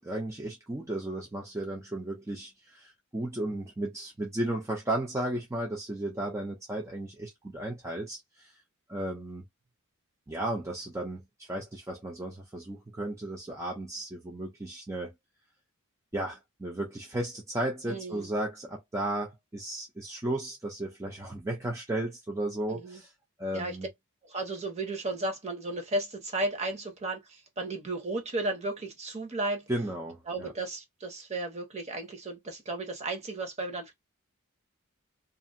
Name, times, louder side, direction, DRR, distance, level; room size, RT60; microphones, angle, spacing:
voice 1, 0.0-8.5 8.9-9.4 10.3-15.1 16.1-23.1 23.4-23.9 29.7-30.5, right 1 dB, 15° right, 0.5 m, -34 dB
voice 2, 17.9-18.3 22.7-23.0 23.5-23.8 24.2-29.7 30.3-33.9, right 2 dB, 30° right, 0.9 m, -34 dB
2.6 x 2.5 x 2.6 m
head